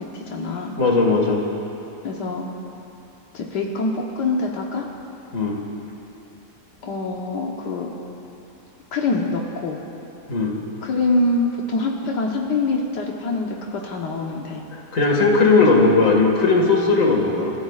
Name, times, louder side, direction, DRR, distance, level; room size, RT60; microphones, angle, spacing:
voice 1, 0.0-0.7 2.0-2.5 3.3-4.9 6.8-8.0 8.9-9.8 10.8-14.6 15.7-15.8, left 2 dB, 85° left, -1 dB, 1.7 m, -25 dB
voice 2, 0.8-1.4 5.3-5.6 10.3-10.6 14.7-17.5, left 3 dB, 50° left, 0 dB, 2.2 m, -17 dB
29.0 x 15.0 x 2.4 m, 2.8 s
omnidirectional pair, 1.8 m